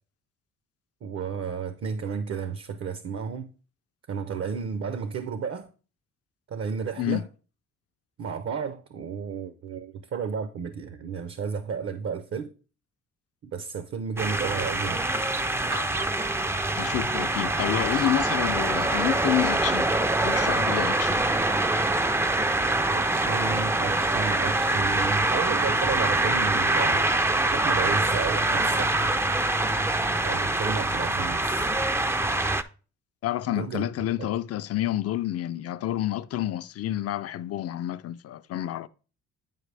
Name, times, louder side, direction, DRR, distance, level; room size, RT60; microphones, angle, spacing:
voice 1, 1.0-3.5 4.1-5.7 6.5-7.3 8.2-12.5 13.4-15.0 22.9-27.0 27.5-29.1 30.2-31.7 33.5-33.9 34.2-34.3, right 6 dB, 50° right, 0.7 m, -32 dB
sound 1, 14.2-32.6, right 2 dB, 10° right, 0.4 m, -24 dB
sound 2, 14.3-22.2, right 1 dB, 90° right, 2.6 m, -47 dB
voice 2, 16.7-19.9 20.2-21.2 33.2-38.9, left 13 dB, 55° left, 0.5 m, -29 dB
9.2 x 4.7 x 3.3 m
cardioid pair, 90°, 30 cm